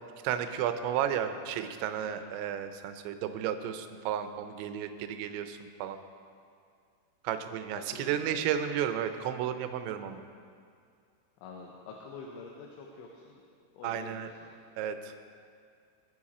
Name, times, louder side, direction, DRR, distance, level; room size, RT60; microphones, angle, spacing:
voice 1, 0.2-6.0 7.2-10.2 13.8-14.3 14.8-15.1, right 9 dB, 80° right, 8 dB, 2.9 m, -33 dB
voice 2, 7.9-8.5 11.4-13.5 13.7-14.5, left 4 dB, 85° left, -1 dB, 3.5 m, -46 dB
22.0 x 7.7 x 4.3 m, 2.3 s
omnidirectional pair, 5.5 m